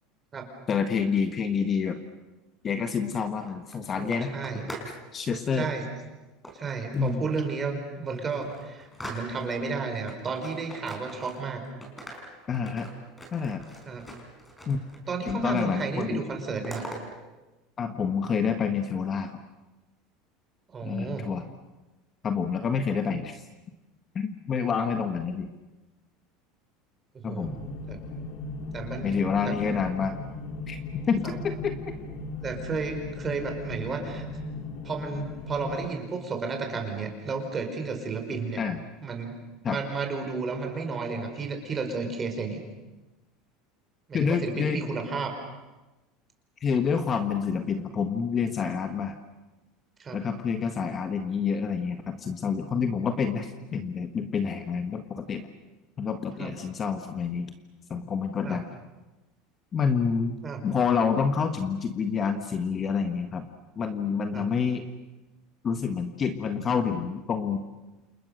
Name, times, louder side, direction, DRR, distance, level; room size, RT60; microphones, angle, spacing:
voice 1, 0.7-2.0 2.6-4.3 5.1-5.7 6.9-7.3 12.5-12.9 13.3-13.6 14.7-14.8 15.3-16.2 17.8-19.4 20.8-21.4 22.2-23.4 24.1-25.5 27.2-27.6 29.0-30.2 30.7-31.8 38.6-38.8 39.6-39.8 44.1-44.8 46.6-49.2 50.1-55.4 56.0-57.5 57.9-58.7 59.7-60.4 60.6-63.4 63.8-64.9 65.6-67.6, left 6 dB, 25° left, 7 dB, 1.5 m, -28 dB
sound 1, 3.0-5.0 5.3-5.6 6.4-7.3 7.7-7.8 8.1-9.7 10.1-11.6 11.8-15.0 15.3-17.0, right 1 dB, 5° left, 5.1 m, -43 dB
voice 2, 4.0-4.8 5.6-5.9 6.5-11.6 13.8-14.0 15.1-16.8 20.7-21.3 27.2-28.0 28.7-29.6 31.2-31.4 32.4-34.2 34.8-38.6 39.0-39.3 39.7-42.6 44.1-45.3 50.0-50.2 56.4-56.5 58.4-58.6 60.4-60.6 64.3-64.5, right 4 dB, 20° right, 4 dB, 5.0 m, -32 dB
sound 2, 27.4-35.9, left 2 dB, 55° left, 3.0 m, -37 dB
29.0 x 28.5 x 6.6 m, 1.1 s
cardioid pair, 155°, 0 cm